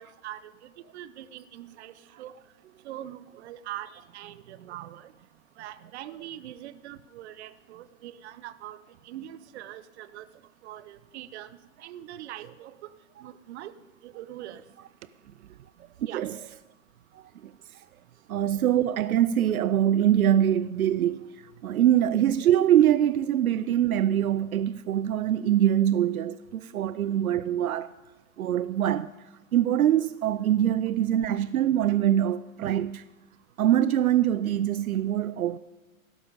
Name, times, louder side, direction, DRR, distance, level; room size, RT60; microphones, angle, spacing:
voice 1, 0.0-2.3 2.8-5.1 5.6-8.8 9.0-10.2 10.6-11.5 11.8-12.7 13.2-13.7 14.0-14.6 16.0-16.2, right 12 dB, 50° right, 1.0 m, -42 dB
voice 2, 17.1-17.8 18.3-21.3 21.6-27.9 28.4-29.1 29.5-33.0 33.6-35.6, right 11 dB, 80° right, 0.6 m, -24 dB
17.5 x 12.0 x 5.3 m
hypercardioid pair, 120°, 42 cm